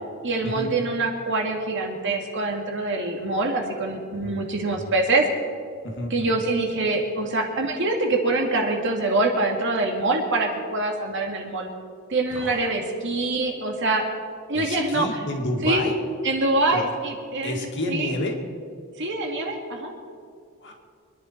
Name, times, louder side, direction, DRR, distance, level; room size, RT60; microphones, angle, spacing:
voice 1, 0.2-5.2 6.1-11.7 12.1-14.1 14.5-15.1 15.6-15.8 16.2-18.1 19.0-19.9, right 2 dB, 55° right, 1 dB, 2.3 m, -24 dB
voice 2, 4.1-4.9 5.8-6.4 12.3-12.6 14.5-15.9 16.7-16.8 17.4-18.4 20.6-20.7, left 1 dB, 55° left, 1 dB, 2.3 m, -30 dB
25.5 x 11.0 x 4.6 m, 2.2 s
head